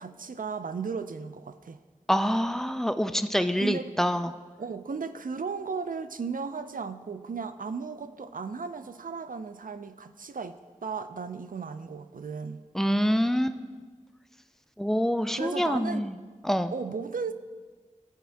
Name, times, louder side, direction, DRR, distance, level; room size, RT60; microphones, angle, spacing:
voice 1, 0.0-1.8 3.6-3.9 4.6-12.6 15.3-16.1 16.7-17.3, right 5 dB, 90° right, 11 dB, 0.4 m, -35 dB
voice 2, 2.1-4.3 12.7-13.6 14.8-16.1 16.4-16.7, equal, 5° left, 10 dB, 0.4 m, -26 dB
14.0 x 4.6 x 3.4 m, 1.4 s
wide cardioid pair, 40°, 14 cm